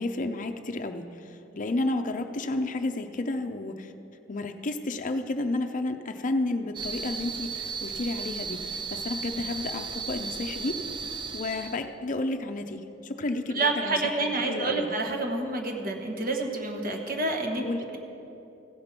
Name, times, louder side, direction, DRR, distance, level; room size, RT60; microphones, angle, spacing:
voice 1, 0.0-3.9 4.3-10.8 11.3-14.9 17.6-17.8, left 2 dB, 45° left, 6 dB, 0.5 m, -31 dB
sound 1, 6.7-11.8, right 5 dB, 25° right, 0.4 m, -35 dB
voice 2, 13.5-17.7, right 2 dB, 50° right, 3 dB, 1.1 m, -28 dB
15.5 x 5.2 x 5.9 m, 2.9 s
head